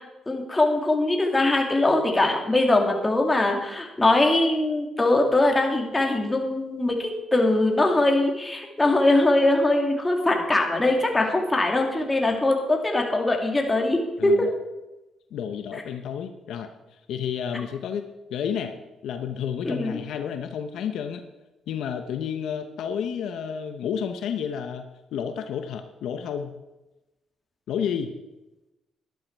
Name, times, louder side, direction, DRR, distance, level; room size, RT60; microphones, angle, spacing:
voice 1, 0.0-14.5 19.6-20.0, left 2 dB, 15° left, 1 dB, 2.5 m, -22 dB
voice 2, 14.2-14.5 15.3-16.7 17.1-18.7 19.0-21.2 21.7-26.5 27.7-28.1, left 8 dB, 80° left, 7 dB, 0.9 m, -31 dB
12.0 x 11.5 x 4.6 m, 1.0 s
cardioid pair, 90°, 0 cm